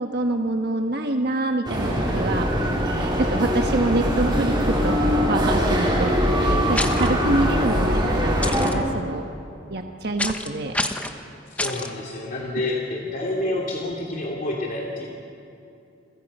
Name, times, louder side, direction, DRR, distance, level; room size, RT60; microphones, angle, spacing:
voice 1, 0.0-2.5 3.0-6.1 6.4-9.2 9.7-10.7, right 2 dB, 60° right, 4 dB, 1.3 m, -26 dB
sound 1, 1.7-8.7, equal, 25° right, 4.3 m, -22 dB
sound 2, 6.7-7.1 8.4-8.7 10.2-10.5 10.7-11.1 11.6-11.9, left 2 dB, 10° left, 1.1 m, -27 dB
voice 2, 11.5-15.1, left 2 dB, 50° left, -2 dB, 2.7 m, -28 dB
29.5 x 24.5 x 5.5 m, 2.6 s
head